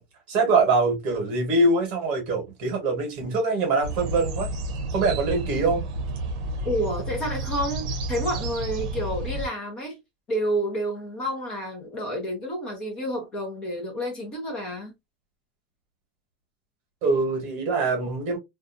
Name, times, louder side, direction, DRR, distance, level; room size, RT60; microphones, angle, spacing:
voice 1, 0.3-4.5 4.9-5.8 17.0-18.4, right 3 dB, 35° right, 1.2 m, -23 dB
sound 1, 3.8-9.5, right 2 dB, 65° right, 0.7 m, -31 dB
voice 2, 6.6-10.0 10.3-14.9, equal, 25° left, 0.9 m, -29 dB
2.6 x 2.3 x 2.5 m
supercardioid pair, 175°, 4 cm